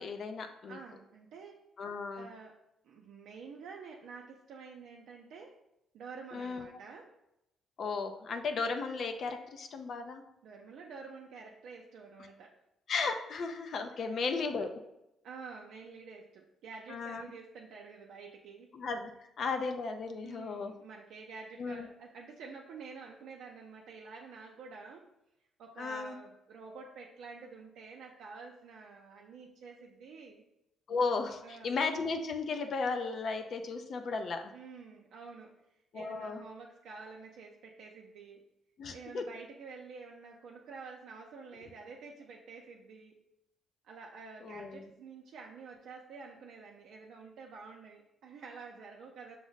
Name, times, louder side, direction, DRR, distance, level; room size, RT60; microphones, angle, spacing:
voice 1, 0.0-0.8 1.8-2.3 6.3-6.7 7.8-10.2 12.9-14.7 16.9-17.2 18.7-19.1 19.4-20.7 21.6-21.9 25.8-26.1 30.9-34.4 35.9-36.4 38.8-39.2 44.4-44.8, left 4 dB, 60° left, 6 dB, 0.4 m, -35 dB
voice 2, 0.7-1.6 2.2-2.6 2.8-5.6 5.9-7.1 10.4-12.5 13.9-14.2 14.5-14.6 15.2-18.7 20.2-25.1 25.6-30.4 31.4-31.7 34.5-35.6 35.9-38.4 38.9-43.2 43.8-49.4, right 4 dB, 80° right, -1 dB, 0.5 m, -49 dB
5.9 x 2.0 x 3.9 m, 0.85 s
cardioid pair, 90°, 0 cm